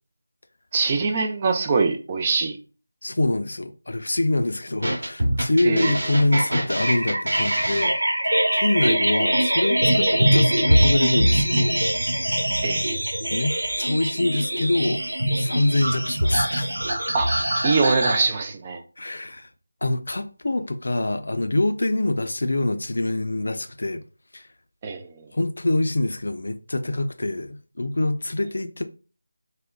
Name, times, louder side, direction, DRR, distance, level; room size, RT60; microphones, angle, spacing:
voice 1, 0.7-2.6 5.6-5.9 12.6-12.8 17.1-17.3 17.6-18.8 24.8-25.3, right 4 dB, 20° right, 0.3 m, -23 dB
voice 2, 3.0-7.9 8.2-11.8 13.3-15.0 15.4-16.7 19.0-19.5 19.8-24.0 24.3-24.5 25.3-28.8, left 2 dB, 65° left, 0.4 m, -25 dB
sound 1, 4.8-18.2, right 1 dB, 65° right, 1.1 m, -23 dB
3.6 x 2.1 x 2.3 m
figure-of-eight pair, 170°, 0 cm